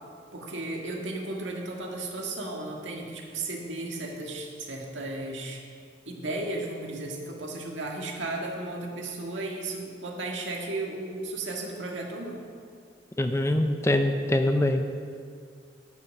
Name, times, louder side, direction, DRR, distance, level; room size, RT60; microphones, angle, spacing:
voice 1, 0.3-5.6 6.1-12.4, right 2 dB, 80° right, 0 dB, 1.7 m, -34 dB
voice 2, 13.2-14.9, left 1 dB, 15° left, 6 dB, 0.5 m, -24 dB
12.0 x 5.7 x 6.5 m, 2.1 s
head